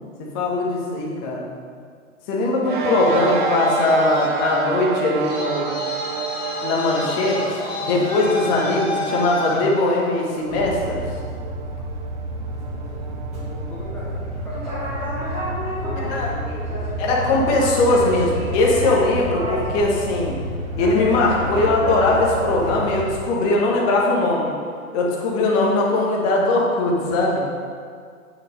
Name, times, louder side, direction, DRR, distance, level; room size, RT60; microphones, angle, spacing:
voice 1, 0.3-1.5 2.3-5.7 6.6-11.0 16.0-16.3 17.0-20.4 20.8-24.5 24.9-27.4, left 2 dB, 25° left, -2 dB, 1.5 m, -20 dB
sound 1, 2.6-15.4, right 7 dB, 40° right, 0.4 m, -31 dB
Traffic noise roadway noise, 2.7-10.4, left 2 dB, 60° left, 2.0 m, -30 dB
sound 2, 10.5-23.1, equal, 15° right, 2.3 m, -28 dB
voice 2, 12.5-15.4 15.8-17.0, left 1 dB, 5° left, -7 dB, 0.9 m, -39 dB
9.1 x 5.5 x 5.3 m, 2.1 s
hypercardioid pair, 140°, 43 cm